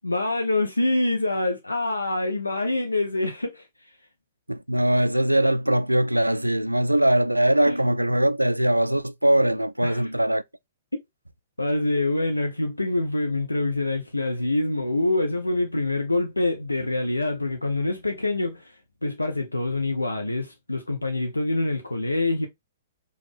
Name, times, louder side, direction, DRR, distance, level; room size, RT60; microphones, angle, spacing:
voice 1, 0.0-3.7 7.7-7.8 9.8-10.0 11.6-18.7 19.0-22.5, left 2 dB, 80° left, 0.6 m, -25 dB
voice 2, 4.5-10.4, right 1 dB, 85° right, 0.3 m, -21 dB
5.0 x 2.4 x 3.3 m
figure-of-eight pair, 115°, 0 cm